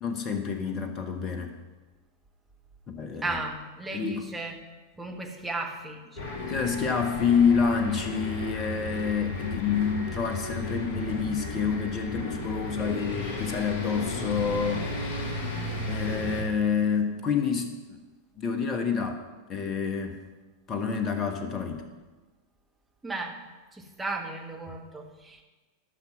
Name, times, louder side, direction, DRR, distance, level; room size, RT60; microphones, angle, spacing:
voice 1, 0.0-1.5 2.9-3.4 3.9-4.3 6.5-15.2 15.8-18.0 18.4-19.2 19.5-20.2 20.7-21.9, left 6 dB, 30° left, 6 dB, 1.1 m, -28 dB
voice 2, 3.2-4.5 5.0-6.5 15.5-15.8 23.0-23.4 23.7-25.4, right 3 dB, 5° right, 1 dB, 1.4 m, -35 dB
sound 1, 6.2-16.4, left 2 dB, 45° left, 2.0 m, -34 dB
12.5 x 6.1 x 5.9 m, 1.3 s
figure-of-eight pair, 90°, 0 cm